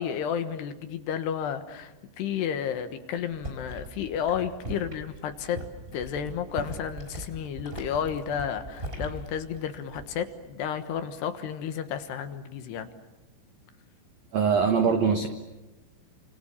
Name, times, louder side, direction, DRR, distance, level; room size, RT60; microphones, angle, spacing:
voice 1, 0.0-5.6 5.9-12.9, left 8 dB, 70° left, 8 dB, 3.2 m, -32 dB
sound 1, 3.2-10.3 10.6-11.0, right 1 dB, 15° right, 3.4 m, -40 dB
voice 2, 14.3-15.3, right 6 dB, 75° right, 6 dB, 1.6 m, -22 dB
29.5 x 27.0 x 7.2 m, 1.1 s
omnidirectional pair, 5.4 m